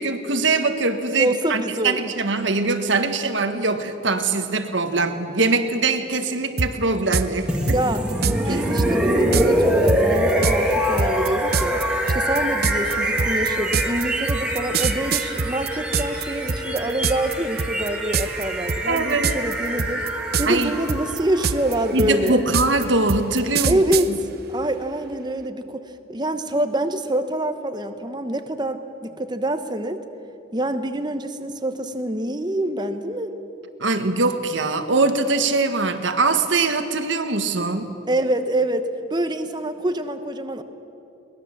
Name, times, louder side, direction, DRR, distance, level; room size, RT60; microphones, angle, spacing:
voice 1, 0.0-7.5 8.5-8.7 18.9-19.4 20.5-20.7 21.9-23.8 24.1-24.2 33.8-37.9, right 3 dB, 75° right, 8 dB, 1.5 m, -22 dB
voice 2, 1.2-2.0 7.7-8.0 8.5-11.8 12.1-20.0 20.4-22.4 23.6-24.1 24.5-25.8 26.1-30.0 30.5-33.3 38.1-40.6, right 1 dB, 20° right, 9 dB, 1.1 m, -25 dB
sound 1, 6.6-6.7 7.1-7.3 7.7-8.4 8.8-8.9 9.3-9.5 9.9-16.2 16.5-17.3 17.6-17.9 18.1-18.4 18.7-19.5 19.8-20.6 20.9-24.1, right 5 dB, 50° right, 0.7 m, -23 dB
sound 2, 7.5-23.4, right 1 dB, 5° right, 1.9 m, -25 dB
22.5 x 19.5 x 7.3 m, 2.8 s
head